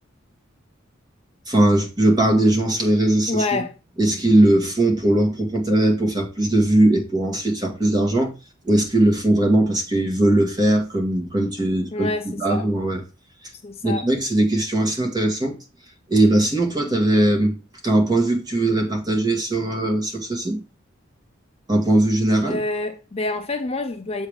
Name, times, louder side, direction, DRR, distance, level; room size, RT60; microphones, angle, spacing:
voice 1, 1.5-3.6 4.0-8.3 8.6-12.1 12.4-13.0 13.8-15.6 16.1-17.6 17.8-20.6 21.7-22.6, right 1 dB, 20° right, 1.7 m, -19 dB
voice 2, 3.3-3.7 11.9-12.6 13.6-14.0 22.4-24.3, left 2 dB, 30° left, 0.5 m, -27 dB
7.2 x 3.5 x 6.4 m
head